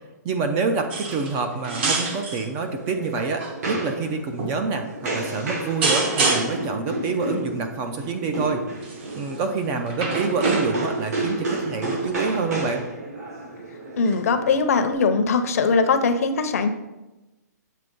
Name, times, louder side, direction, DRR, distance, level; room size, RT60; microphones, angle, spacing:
voice 1, 0.2-8.6 9.1-12.8, right 4 dB, 20° right, 6 dB, 0.4 m, -27 dB
sound 1, 0.9-1.4 1.6-2.5 3.2-3.5 4.4-4.6 5.8-6.7 8.8-9.1 9.9-11.0 12.1-12.2, right 3 dB, 35° right, 0.9 m, -25 dB
sound 2, 2.4-14.9, right 2 dB, 60° right, 2.1 m, -31 dB
voice 2, 14.0-16.7, left 4 dB, 55° left, 8 dB, 0.7 m, -21 dB
7.6 x 3.3 x 5.2 m, 1.0 s
hypercardioid pair, 165°, 10 cm